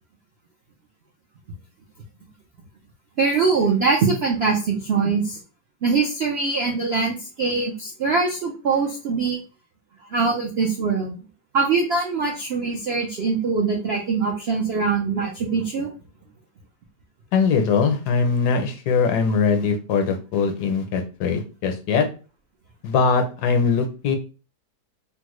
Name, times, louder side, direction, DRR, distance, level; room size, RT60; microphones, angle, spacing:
voice 1, 3.2-5.4 5.8-9.4 10.1-11.2 11.5-15.9, right 4 dB, 70° right, -1 dB, 0.6 m, -23 dB
voice 2, 17.3-22.1 22.8-24.2, left 5 dB, 75° left, 6 dB, 1.1 m, -21 dB
3.6 x 2.1 x 3.0 m, 0.34 s
omnidirectional pair, 1.8 m